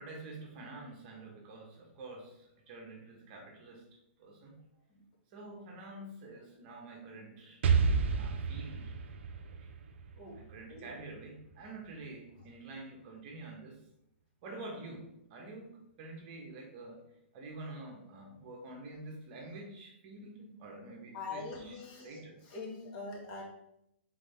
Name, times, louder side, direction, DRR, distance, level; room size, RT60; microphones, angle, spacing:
voice 1, 0.0-3.9 4.2-4.6 5.3-7.6 8.1-8.9 9.3-9.7 10.3-13.8 14.4-22.4, right 2 dB, 40° right, 1 dB, 1.1 m, -48 dB
Explosion, 7.6-11.4, right 5 dB, 65° right, 0.5 m, -31 dB
voice 2, 21.1-23.4, left 3 dB, 40° left, -3 dB, 1.6 m, -43 dB
3.8 x 3.8 x 3.4 m, 0.79 s
hypercardioid pair, 145°, 7 cm